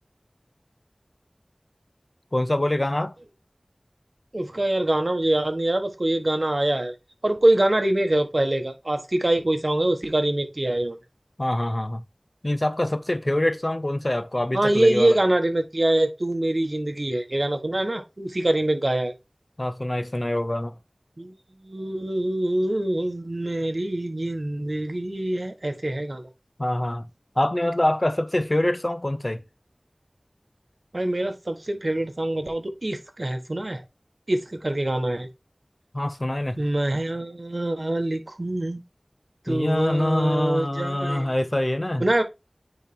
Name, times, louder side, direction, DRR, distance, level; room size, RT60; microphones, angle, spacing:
voice 1, 2.3-3.1 11.4-12.0 12.4-15.2 19.6-20.7 26.6-27.1 27.4-29.4 35.9-36.6 39.5-42.1, left 1 dB, 40° left, 0.8 m, -25 dB
voice 2, 4.3-6.9 7.2-11.0 14.5-19.1 21.2-21.3 21.6-26.3 30.9-33.8 34.3-35.3 36.6-38.8 39.5-41.3 42.0-42.2, right 1 dB, 60° right, 1.3 m, -24 dB
9.1 x 3.2 x 4.4 m
wide cardioid pair, 40°, 0 cm